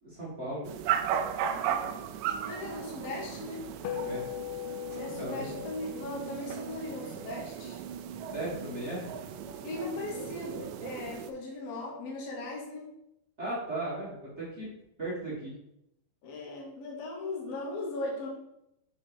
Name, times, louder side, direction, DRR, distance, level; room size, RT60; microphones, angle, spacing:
voice 1, 0.0-0.6 4.0-4.2 5.2-5.5 8.3-9.0 13.4-14.7 15.0-15.5, right 1 dB, 35° right, -8 dB, 1.1 m, -36 dB
sound 1, 0.6-11.3, right 9 dB, 85° right, 1.9 m, -36 dB
voice 2, 1.5-2.0 2.4-3.7 4.9-7.8 9.6-13.0 16.2-18.3, left 2 dB, 65° left, -3 dB, 1.6 m, -38 dB
sound 2, 3.8-8.5, left 13 dB, 80° left, 2.3 m, -41 dB
6.0 x 4.0 x 4.9 m, 0.84 s
omnidirectional pair, 4.3 m